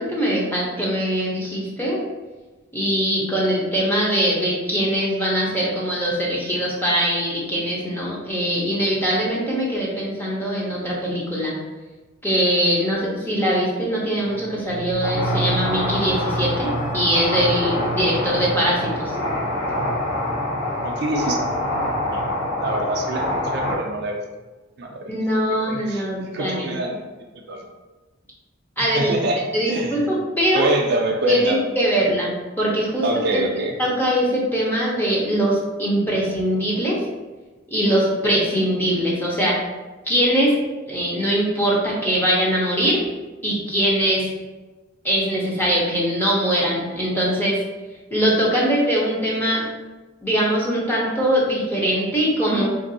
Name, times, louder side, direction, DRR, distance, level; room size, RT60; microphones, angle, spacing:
voice 1, 0.0-2.0 2.7-11.6 12.2-19.1 25.1-26.7 28.8-29.1 29.5-30.7 31.3-33.1 33.3-33.4 33.8-37.0 37.7-39.6 40.1-40.5 40.9-43.0 43.4-44.3 45.0-47.6 48.1-49.6 50.2-52.7, equal, 10° left, -5 dB, 0.7 m, -22 dB
sound 1, 14.1-23.5 23.9-24.0, right 2 dB, 40° left, 1.3 m, -33 dB
sound 2, 15.0-23.7, left 1 dB, 75° left, 1.2 m, -26 dB
voice 2, 20.8-21.4 22.1-22.2 22.6-24.2 24.8-25.1 25.5-27.0 27.5-27.6 28.8-30.1 30.5-32.0 33.0-33.8, right 2 dB, 50° right, 2 dB, 0.4 m, -25 dB
3.6 x 2.6 x 2.6 m, 1.2 s
head